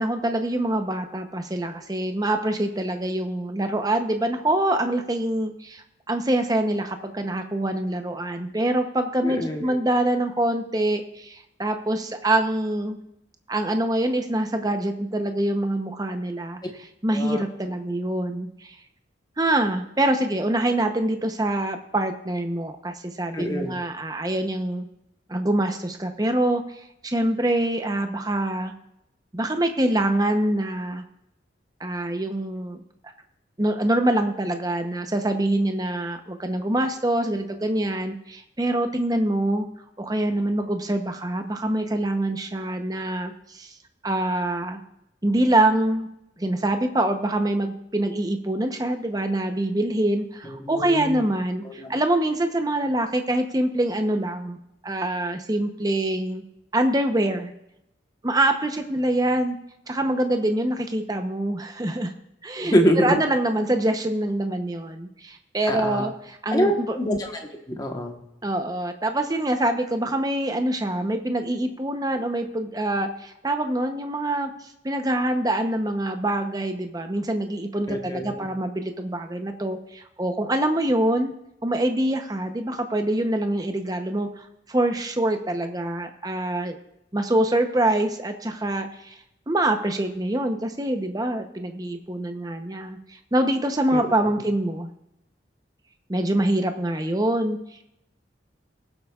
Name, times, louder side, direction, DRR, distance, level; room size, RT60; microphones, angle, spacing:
voice 1, 0.0-13.0 13.5-16.6 17.0-18.7 19.4-24.9 25.3-26.6 27.0-28.7 29.3-31.0 31.8-32.8 33.6-39.7 40.0-43.7 44.0-44.8 45.2-46.1 46.4-54.6 54.8-56.4 56.7-57.5 58.2-59.6 59.9-62.1 62.4-62.8 63.0-66.1 66.4-66.9 68.4-81.3 81.6-86.8 87.1-89.1 89.5-93.0 93.3-94.9 96.1-97.6, right 1 dB, 20° right, 6 dB, 0.8 m, -25 dB
voice 2, 9.2-9.8 17.1-17.4 23.3-23.8 50.4-51.3 51.6-51.9 62.6-63.2 65.7-66.1 66.5-67.4 67.7-68.2 77.9-78.5 93.9-94.1, equal, 20° left, 3 dB, 1.2 m, -25 dB
19.5 x 8.0 x 2.4 m, 0.81 s
head